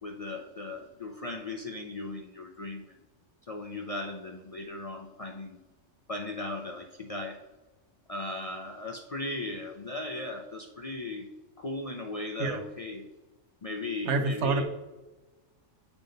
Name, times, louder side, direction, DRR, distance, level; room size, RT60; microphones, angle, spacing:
voice 1, 0.0-3.0 3.5-5.6 6.1-7.4 8.1-11.3 11.6-13.0 13.6-14.6, left 2 dB, 70° left, 2 dB, 0.3 m, -37 dB
voice 2, 14.0-14.6, right 3 dB, 65° right, 7 dB, 1.0 m, -27 dB
8.8 x 3.4 x 3.9 m, 1.1 s
omnidirectional pair, 1.3 m